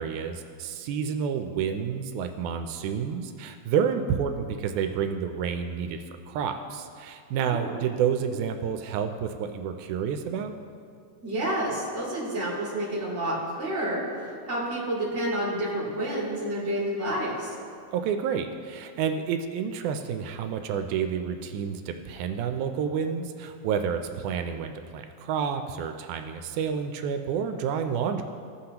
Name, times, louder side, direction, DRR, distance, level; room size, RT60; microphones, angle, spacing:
voice 1, 0.0-10.5 17.9-28.2, right 7 dB, 85° right, 6 dB, 2.0 m, -29 dB
voice 2, 7.3-7.8 11.2-17.5, right 1 dB, 25° right, -6 dB, 2.2 m, -29 dB
15.0 x 5.8 x 2.9 m, 2.3 s
omnidirectional pair, 3.4 m